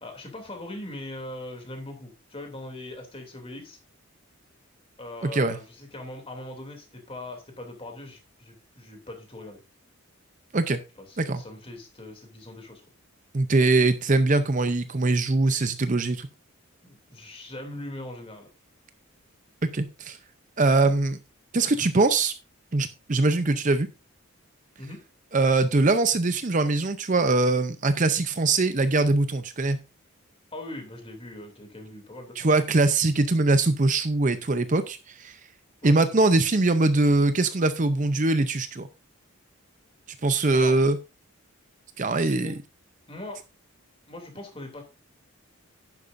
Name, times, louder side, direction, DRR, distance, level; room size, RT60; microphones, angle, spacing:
voice 1, 0.0-3.8 5.0-9.6 11.0-12.8 16.8-18.5 24.8-25.0 30.5-32.5 35.8-36.0 40.5-40.8 42.2-42.5 43.1-43.4 44.1-44.8, left 1 dB, 25° left, 3 dB, 2.8 m, -40 dB
voice 2, 5.2-5.6 10.5-10.8 11.2-11.4 13.3-16.3 19.7-20.2 20.6-21.2 21.5-22.3 22.7-23.9 25.3-29.8 32.4-35.4 35.8-38.9 40.2-41.0 42.0-42.5, right 3 dB, 35° right, 10 dB, 0.6 m, -22 dB
10.5 x 10.5 x 2.6 m, 0.27 s
head